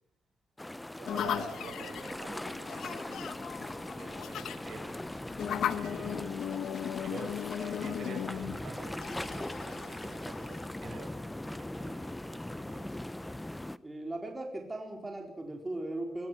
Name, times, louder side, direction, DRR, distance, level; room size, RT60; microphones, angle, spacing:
sound 1, 0.6-13.8, left 1 dB, 10° left, 0.8 m, -40 dB
voice 1, 1.0-3.6 4.0-5.0 5.7-6.6 7.0-13.0, right 4 dB, 80° right, 4 dB, 7.1 m, -48 dB
sound 2, 1.1-10.7, left 9 dB, 85° left, 1.1 m, -37 dB
voice 2, 13.8-16.3, right 1 dB, 20° right, 1 dB, 4.3 m, -38 dB
23.0 x 15.0 x 7.9 m, 0.78 s
cardioid pair, 95°, 0 cm